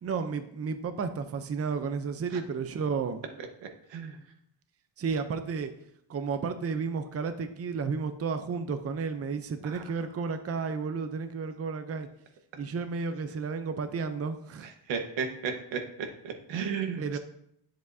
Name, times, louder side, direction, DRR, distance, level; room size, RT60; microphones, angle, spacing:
voice 1, 0.0-3.2 5.0-5.7 6.1-12.1 12.6-14.7 17.0-17.2, right 5 dB, 35° right, 9 dB, 0.7 m, -32 dB
voice 2, 14.9-17.2, right 6 dB, 85° right, 4 dB, 1.4 m, -34 dB
10.0 x 7.7 x 2.7 m, 0.73 s
cardioid pair, 115°, 45 cm